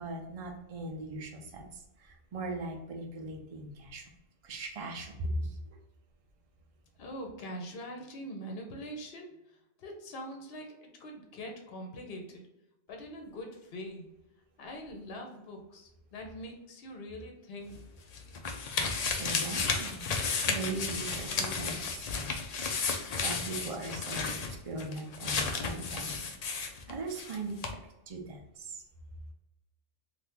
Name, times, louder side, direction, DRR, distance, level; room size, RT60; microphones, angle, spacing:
voice 1, 0.0-4.0 4.4-5.8 19.2-20.1 20.5-22.4 23.2-26.2 26.5-27.6 28.1-28.8, right 2 dB, 40° right, 2 dB, 0.5 m, -39 dB
voice 2, 7.0-9.3 9.8-12.4 12.9-14.1 14.6-17.8, equal, 60° left, 2 dB, 0.9 m, -43 dB
sound 1, 17.7-27.4 27.6-27.7, left 4 dB, 90° left, 0.3 m, -33 dB
2.8 x 2.5 x 3.4 m, 0.89 s
omnidirectional pair, 1.2 m